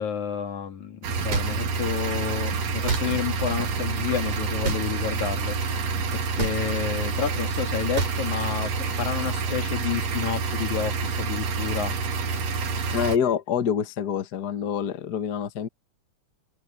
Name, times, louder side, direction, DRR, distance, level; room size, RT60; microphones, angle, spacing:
voice 1, 0.0-11.9, left 8 dB, 70° left, 3.4 m, -30 dB
sound 1, 1.0-13.2, right 4 dB, 60° right, 2.9 m, -28 dB
sound 2, 1.3-1.5 2.9-3.0 4.6-4.8 6.4-6.6 8.0-8.2, right 4 dB, 90° right, 6.6 m, -27 dB
voice 2, 12.9-15.7, left 8 dB, 50° left, 1.2 m, -26 dB
omnidirectional pair, 3.5 m